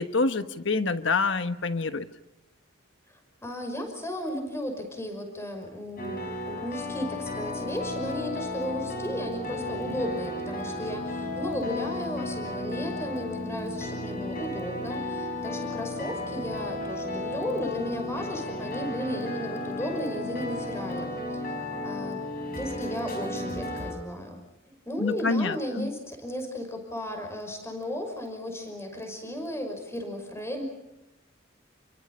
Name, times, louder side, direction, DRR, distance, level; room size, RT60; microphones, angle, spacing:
voice 1, 0.0-2.1 25.0-25.9, left 3 dB, 65° left, 10 dB, 1.3 m, -27 dB
voice 2, 3.4-21.5 21.8-22.2 22.6-24.4 24.9-30.6, equal, 15° left, 5 dB, 5.7 m, -35 dB
sound 1, 6.0-23.9, left 1 dB, 45° left, 5.9 m, -34 dB
29.5 x 24.0 x 5.6 m, 0.93 s
head